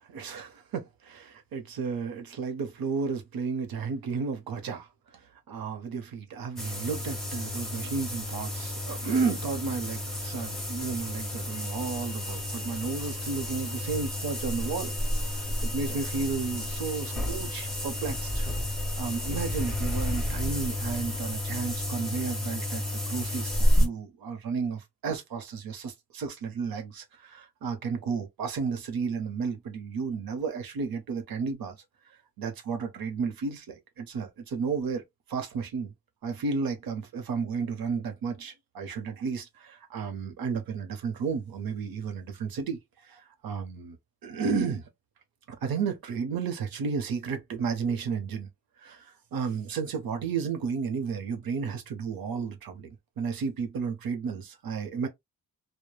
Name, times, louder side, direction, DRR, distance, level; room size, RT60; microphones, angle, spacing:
voice 1, 0.0-18.5 19.0-31.8 32.1-35.0 35.3-35.9 36.2-44.0 44.2-44.9 45.5-48.5 48.8-55.1, right 5 dB, 70° right, 0.8 m, -33 dB
sound 1, 6.6-23.9, left 1 dB, ahead, 1.2 m, -31 dB
3.1 x 2.1 x 2.2 m
wide cardioid pair, 125°, 36 cm